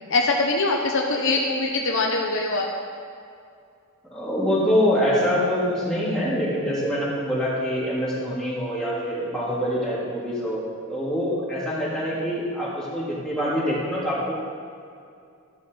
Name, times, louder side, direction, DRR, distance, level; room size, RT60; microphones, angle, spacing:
voice 1, 0.1-2.7, left 3 dB, 60° left, 0 dB, 1.1 m, -23 dB
voice 2, 4.1-10.6 10.9-14.3, equal, 5° left, -9 dB, 3.4 m, -25 dB
14.0 x 11.5 x 4.0 m, 2.4 s
head